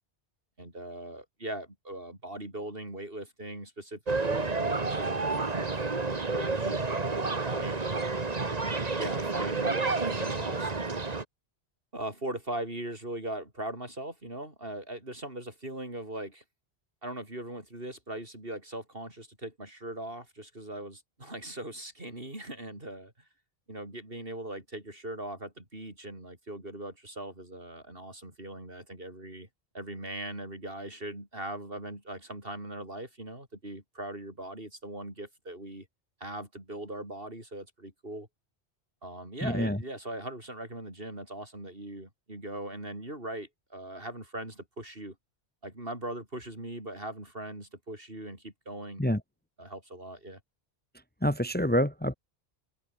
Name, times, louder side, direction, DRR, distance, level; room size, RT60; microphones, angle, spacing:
voice 1, 0.6-5.8 6.0-7.8 8.5-10.7 11.9-16.4 17.0-23.1 23.7-29.5 29.7-35.9 36.2-38.3 39.0-45.2 45.6-49.0 49.6-50.4, right 1 dB, 60° right, 7.1 m, -40 dB
sound 1, 4.1-11.2, right 3 dB, 40° right, 1.7 m, -30 dB
voice 2, 39.4-39.8 49.0-49.2 51.2-52.1, equal, 10° left, 1.4 m, -27 dB
omnidirectional pair, 1.1 m